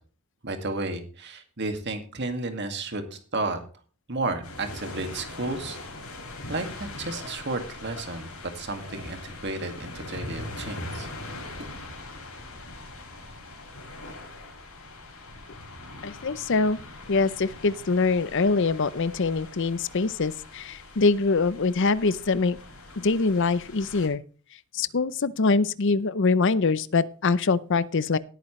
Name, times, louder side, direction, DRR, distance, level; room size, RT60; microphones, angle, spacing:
voice 1, 0.4-3.6 4.1-5.8 6.5-11.1 11.6-11.7, right 2 dB, 50° right, 6 dB, 2.1 m, -32 dB
sound 1, 4.4-24.1, left 2 dB, 80° left, 5.9 m, -41 dB
voice 2, 16.0-16.8 17.1-22.6 23.0-24.2 24.7-28.2, left 4 dB, 55° left, 17 dB, 0.6 m, -24 dB
18.0 x 9.0 x 3.2 m, 0.38 s
head